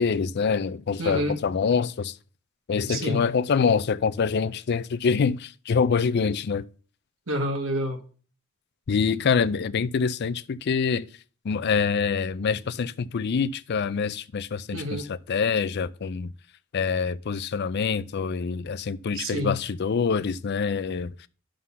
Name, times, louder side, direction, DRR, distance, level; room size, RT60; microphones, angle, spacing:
voice 1, 0.0-2.2 2.7-6.6 8.9-11.1 11.4-16.3 16.7-21.3, left 5 dB, 55° left, 0.4 m, -25 dB
voice 2, 1.0-1.4 2.9-3.2 7.3-8.0 14.7-15.1 19.1-19.6, equal, 70° right, 1.4 m, -28 dB
11.0 x 3.9 x 5.6 m
head